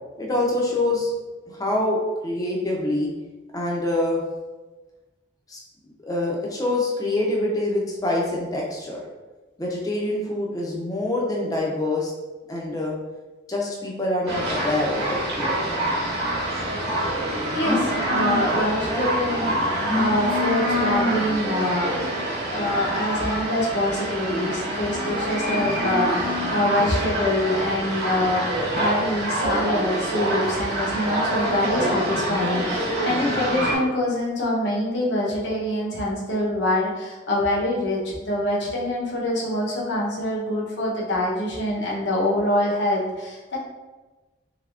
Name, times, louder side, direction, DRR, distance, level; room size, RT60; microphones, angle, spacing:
voice 1, 0.2-1.1 1.5-2.0 2.2-3.1 3.5-4.2 5.5-5.6 6.0-9.0 9.6-12.1 12.5-13.0 13.5-15.5, left 2 dB, 20° left, -2 dB, 0.6 m, -25 dB
sound 1, 14.3-33.8, right 1 dB, 60° right, 1.0 m, -25 dB
voice 2, 17.5-19.6 19.9-22.2 22.5-28.5 28.8-43.6, left 1 dB, 70° left, -4 dB, 0.8 m, -25 dB
3.4 x 3.3 x 2.4 m, 1.2 s
head